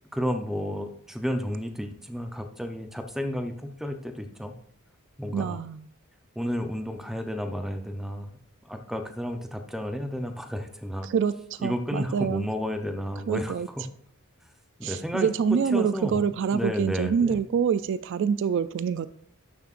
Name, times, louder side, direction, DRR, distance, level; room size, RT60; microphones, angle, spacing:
voice 1, 0.1-4.5 5.2-5.6 6.4-8.3 8.6-11.1 11.6-13.9 14.8-15.3 15.7-16.3 16.5-17.4, equal, ahead, 6 dB, 0.6 m, -32 dB
voice 2, 5.3-5.9 11.0-12.5 13.3-13.7 14.8-19.1, right 7 dB, 55° right, 14 dB, 0.3 m, -26 dB
11.5 x 7.3 x 2.5 m, 0.63 s
head